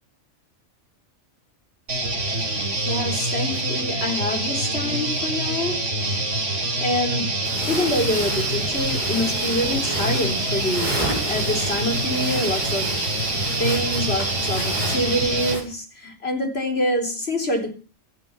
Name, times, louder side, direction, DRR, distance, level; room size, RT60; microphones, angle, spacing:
sound 1, 1.9-15.6, right 2 dB, 70° right, 3.8 m, -25 dB
voice 1, 2.8-5.8 6.8-7.3 7.7-11.0 11.3-13.2 13.6-17.7, left 1 dB, 50° left, 4.1 m, -26 dB
sound 2, 7.4-15.6, right 1 dB, 35° right, 5.5 m, -31 dB
17.0 x 13.5 x 5.8 m
omnidirectional pair, 1.3 m